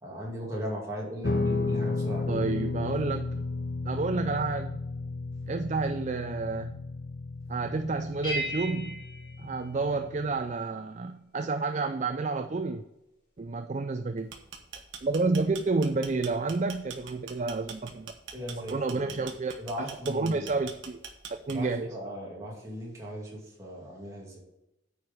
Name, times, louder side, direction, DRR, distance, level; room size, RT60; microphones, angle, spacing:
voice 1, 0.0-2.4 18.3-19.3 19.6-20.6 21.5-24.4, equal, 15° right, -4 dB, 2.5 m, -38 dB
Guitar, 1.2-10.5, left 3 dB, 55° left, 0.6 m, -33 dB
voice 2, 2.3-3.4 3.8-4.8 5.5-6.8 7.5-9.0 9.4-12.8 13.4-14.3 15.0-18.1 18.7-21.0 21.3-21.9, right 3 dB, 35° right, 8 dB, 0.4 m, -30 dB
sound 1, 8.2-10.4, right 1 dB, 25° left, 2.5 m, -37 dB
sound 2, 14.2-21.8, right 6 dB, 75° right, 1.2 m, -43 dB
9.2 x 4.9 x 5.5 m, 0.91 s
head